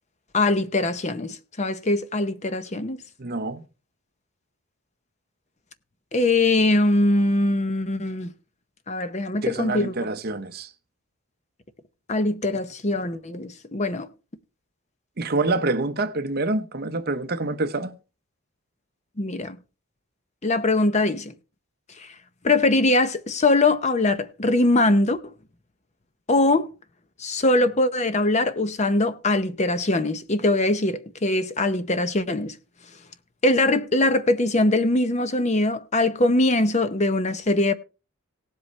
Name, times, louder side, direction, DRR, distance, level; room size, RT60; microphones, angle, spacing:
voice 1, 0.3-3.0 6.1-8.3 8.9-9.9 12.1-14.1 19.2-19.6 20.4-21.3 22.4-25.2 26.3-26.7 27.2-32.5 33.4-37.7, left 2 dB, 30° left, 0.7 m, -22 dB
voice 2, 3.2-3.6 9.4-10.7 15.2-18.0, right 2 dB, 45° right, 0.8 m, -26 dB
17.5 x 7.9 x 3.2 m
head